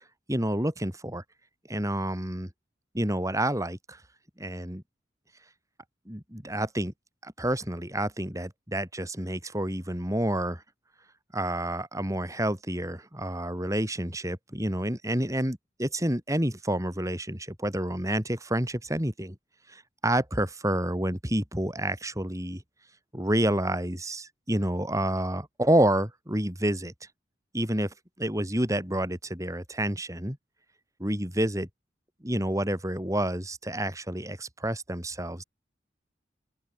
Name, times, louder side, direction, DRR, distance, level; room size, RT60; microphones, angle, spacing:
voice 1, 0.3-1.2 1.7-2.5 2.9-4.0 4.4-4.8 6.1-6.9 7.2-10.6 11.3-19.4 19.7-22.6 23.1-26.9 27.5-30.4 31.0-31.7 32.2-35.4, right 1 dB, 15° right, 5.9 m, -29 dB
open air
head